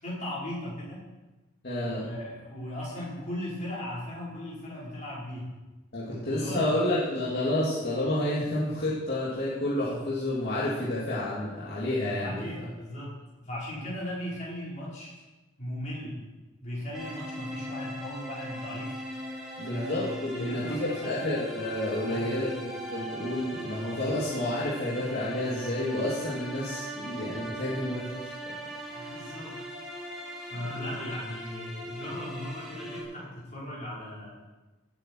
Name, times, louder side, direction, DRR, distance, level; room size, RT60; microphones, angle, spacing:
voice 1, 0.0-1.0 1.8-5.5 6.1-6.8 12.2-13.1 13.4-15.1 15.6-16.2 16.6-19.0 19.7-20.0 20.3-21.3 22.0-22.4 28.9-29.6 30.4-34.4, left 1 dB, 40° left, -6 dB, 4.8 m, -37 dB
voice 2, 1.6-2.1 5.9-12.4 19.6-28.4 29.0-29.1, left 1 dB, 55° left, -8 dB, 2.7 m, -30 dB
sound 1, 16.9-33.0, equal, ahead, 3.3 m, -40 dB
18.0 x 8.2 x 4.7 m, 1.1 s
head